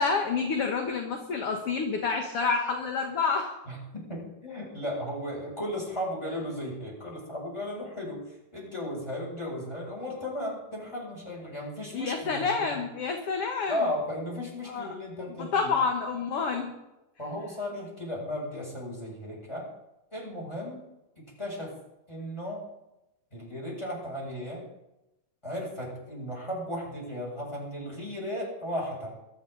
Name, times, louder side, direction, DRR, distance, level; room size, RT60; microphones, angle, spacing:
voice 1, 0.0-3.5 11.9-13.8 14.7-14.9 15.5-16.7, left 5 dB, 55° left, 3 dB, 2.0 m, -28 dB
voice 2, 3.7-12.8 13.7-15.7 17.2-19.7 20.1-20.8 21.2-21.7 22.1-22.6 23.3-24.6 25.4-29.1, left 1 dB, 10° left, -4 dB, 7.0 m, -35 dB
22.5 x 13.5 x 4.0 m, 0.94 s
omnidirectional pair, 3.6 m